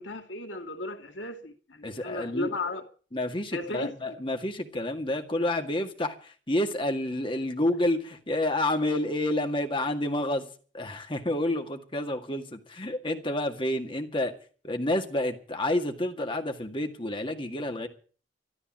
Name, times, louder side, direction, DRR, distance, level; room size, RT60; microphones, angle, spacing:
voice 1, 0.0-2.8 3.5-3.9, left 2 dB, 85° left, 2.5 m, -35 dB
voice 2, 1.8-2.5 3.1-10.5 10.7-14.3 14.6-17.9, left 1 dB, 30° left, 2.0 m, -29 dB
13.5 x 12.5 x 7.4 m
head